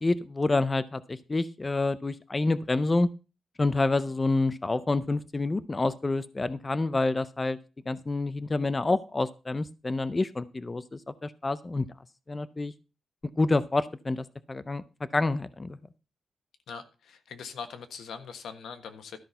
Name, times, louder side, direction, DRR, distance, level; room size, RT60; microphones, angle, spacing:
voice 1, 0.0-3.1 3.6-7.6 7.9-11.9 12.3-12.7 13.4-14.8 15.1-15.8, left 2 dB, 20° left, 14 dB, 0.4 m, -28 dB
voice 2, 16.7-19.2, left 6 dB, 90° left, 8 dB, 1.4 m, -41 dB
13.0 x 5.9 x 5.4 m, 0.32 s
wide cardioid pair, 175°, 0 cm